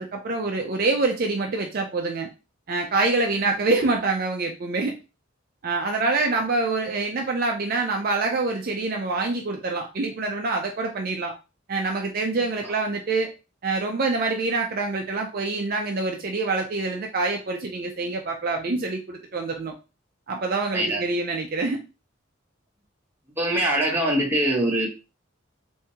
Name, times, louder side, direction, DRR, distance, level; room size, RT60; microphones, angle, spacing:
voice 1, 0.0-2.3 2.7-4.9 5.6-11.3 11.7-13.3 13.6-19.7 20.3-21.8, right 3 dB, 45° right, 2 dB, 0.4 m, -26 dB
voice 2, 23.4-24.9, right 1 dB, 10° right, -2 dB, 0.9 m, -23 dB
3.5 x 2.7 x 2.7 m, 0.29 s
head